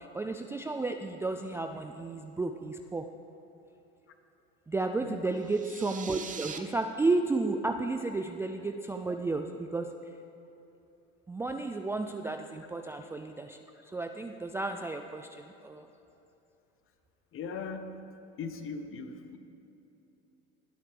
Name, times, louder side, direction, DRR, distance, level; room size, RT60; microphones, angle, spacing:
voice 1, 0.0-3.1 4.7-9.9 11.3-15.9, right 3 dB, 10° right, 5 dB, 0.3 m, -33 dB
sound 1, 5.3-6.6, right 6 dB, 25° right, 0.8 m, -42 dB
voice 2, 17.3-17.9 18.4-19.4, left 5 dB, 40° left, 8 dB, 1.1 m, -39 dB
18.0 x 8.8 x 3.4 m, 2.9 s
hypercardioid pair, 85°, 33 cm